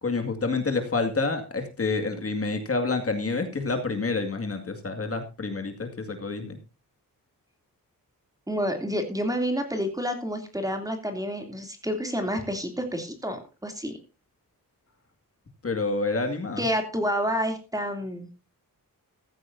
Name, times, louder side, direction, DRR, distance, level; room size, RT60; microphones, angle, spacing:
voice 1, 0.0-6.6 15.6-16.6, left 3 dB, 40° left, 5 dB, 2.2 m, -28 dB
voice 2, 8.5-14.0 16.6-18.3, equal, 10° right, 5 dB, 2.9 m, -29 dB
15.0 x 15.0 x 2.7 m, 0.31 s
wide cardioid pair, 140°, 35 cm